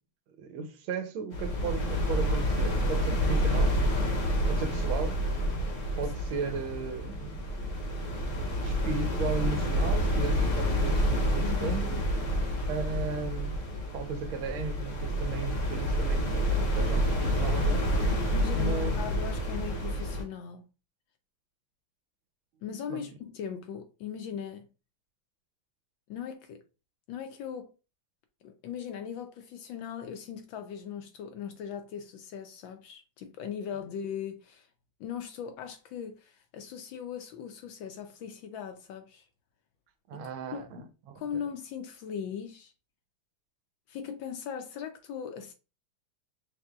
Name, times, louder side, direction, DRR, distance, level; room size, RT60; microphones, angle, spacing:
voice 1, 0.4-3.8 4.5-5.2 6.0-7.4 8.6-12.0 12.7-13.6 13.9-17.9 18.6-18.9 22.9-23.0 40.1-41.2, right 4 dB, 75° right, 1.4 m, -36 dB
sound 1, 1.3-20.2, equal, 50° left, 1.0 m, -28 dB
voice 2, 11.4-11.8 16.9-17.0 17.7-17.8 18.3-20.6 22.6-24.7 26.1-26.6 27.1-27.7 28.4-34.7 35.0-39.2 40.1-40.2 40.5-40.9 41.1-42.7 43.9-45.5, left 8 dB, 75° left, 1.2 m, -39 dB
5.5 x 3.3 x 2.2 m
omnidirectional pair, 2.4 m